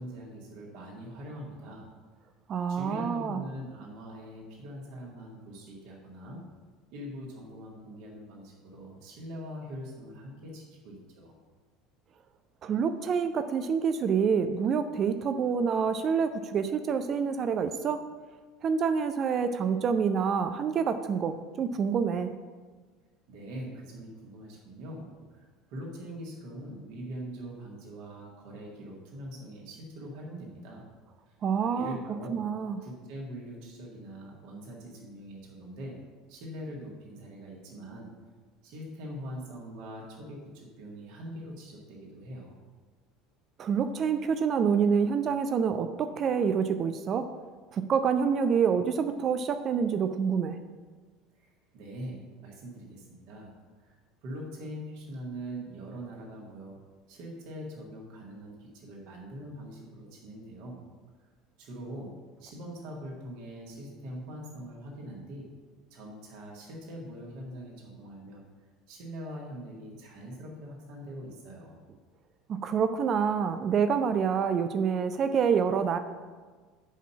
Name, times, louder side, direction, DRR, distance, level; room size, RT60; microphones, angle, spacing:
voice 1, 0.0-1.9 2.7-6.4 6.9-11.3 23.3-30.9 31.3-31.4 31.7-32.4 32.8-36.0 36.3-38.2 38.6-42.6 51.3-54.0 54.2-56.8 57.1-60.9 61.6-65.5 65.9-68.4 68.9-71.8, equal, 55° right, -2 dB, 1.8 m, -43 dB
voice 2, 2.5-3.4 12.6-18.0 18.6-22.3 31.4-32.0 32.3-32.8 43.6-47.3 47.7-50.6 72.5-76.0, right 6 dB, 40° right, 9 dB, 0.5 m, -27 dB
6.4 x 5.4 x 7.0 m, 1.4 s
figure-of-eight pair, 65°, 0 cm